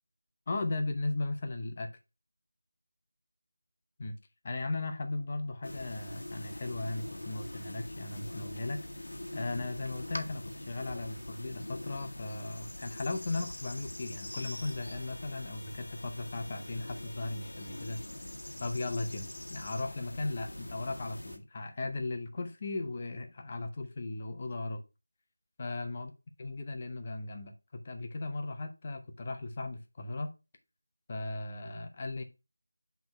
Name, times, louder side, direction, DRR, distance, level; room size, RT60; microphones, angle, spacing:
voice 1, 0.5-1.9 4.0-4.2 4.4-18.0 18.6-24.8 25.6-26.1 26.4-30.3 31.1-32.2, left 2 dB, 30° left, 0.8 m, -37 dB
sound 1, 5.6-21.4, left 1 dB, 85° left, 1.3 m, -43 dB
6.3 x 3.5 x 4.3 m
figure-of-eight pair, 170°, 0 cm